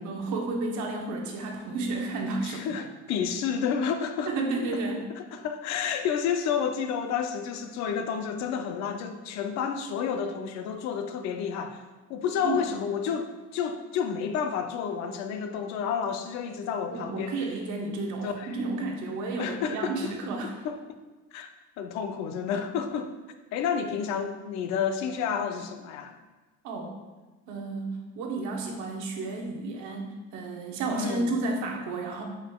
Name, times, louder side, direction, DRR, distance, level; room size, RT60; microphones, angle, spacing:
voice 1, 0.0-2.8 4.3-5.0 12.4-12.6 16.9-20.5 26.6-26.9 27.5-32.2, right 3 dB, 75° right, 1 dB, 0.9 m, -32 dB
voice 2, 2.4-4.4 4.7-4.8 5.1-11.8 12.1-17.4 18.2-18.6 19.4-20.1 20.4-20.8 21.3-21.5 21.8-23.1 23.5-26.2 30.9-31.3, left 7 dB, 65° left, 8 dB, 0.5 m, -30 dB
4.9 x 4.7 x 2.3 m, 1.2 s
cardioid pair, 175°, 30 cm